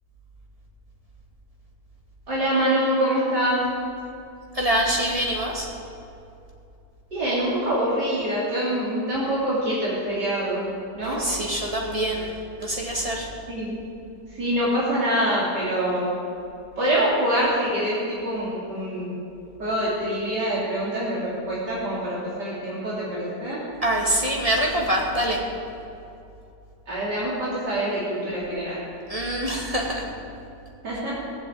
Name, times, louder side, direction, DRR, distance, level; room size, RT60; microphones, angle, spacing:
voice 1, 2.3-3.6 7.1-10.6 11.0-11.2 13.5-13.8 14.4-16.1 16.8-18.0 18.2-19.2 19.6-23.6 26.9-28.8 30.8-31.2, right 1 dB, 75° right, -7 dB, 3.5 m, -25 dB
voice 2, 4.5-5.7 11.0-12.3 12.6-13.3 23.8-25.4 29.1-30.0, right 1 dB, 20° right, -2 dB, 2.2 m, -25 dB
18.0 x 7.6 x 8.6 m, 2.7 s
omnidirectional pair, 1.9 m